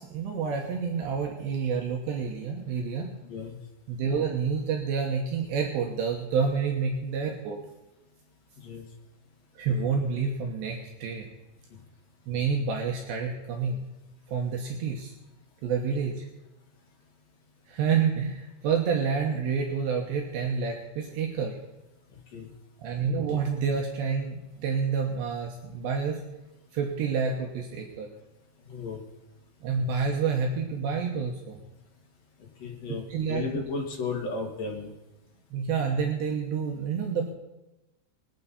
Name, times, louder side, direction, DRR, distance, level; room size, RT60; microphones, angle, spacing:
voice 1, 0.0-3.1 3.9-7.6 9.6-11.3 12.3-13.8 14.3-15.1 15.6-16.3 17.7-21.6 22.8-26.2 26.7-28.1 29.6-31.6 33.1-33.4 35.5-37.3, right 6 dB, 75° right, 1 dB, 3.2 m, -28 dB
voice 2, 3.2-3.6 8.6-8.8 22.3-22.5 28.7-29.0 32.6-34.9, left 4 dB, 50° left, 0 dB, 2.2 m, -34 dB
22.5 x 9.1 x 4.1 m, 1.0 s
omnidirectional pair, 5.4 m